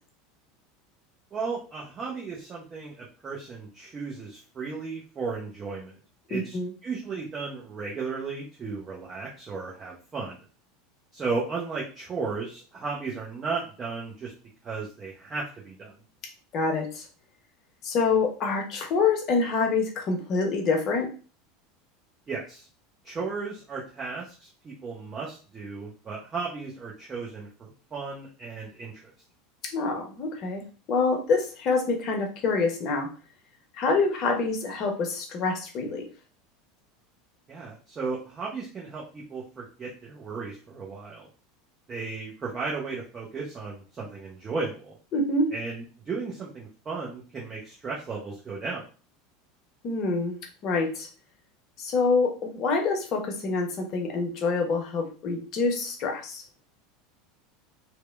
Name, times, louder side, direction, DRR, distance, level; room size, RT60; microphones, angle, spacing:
voice 1, 1.3-5.9 6.3-6.6 6.8-10.4 11.1-14.3 14.6-16.0 22.3-22.7 23.0-28.9 37.5-41.3 41.9-45.0 45.5-48.8, right 4 dB, 30° right, -4 dB, 0.6 m, -35 dB
voice 2, 6.3-6.7 16.5-17.0 17.8-21.1 29.7-30.6 30.9-33.1 33.8-36.1 45.1-45.5 49.8-50.4 50.6-51.1 51.8-56.4, left 4 dB, 45° left, 2 dB, 0.7 m, -26 dB
2.9 x 2.1 x 2.3 m, 0.37 s
figure-of-eight pair, 80°, 0 cm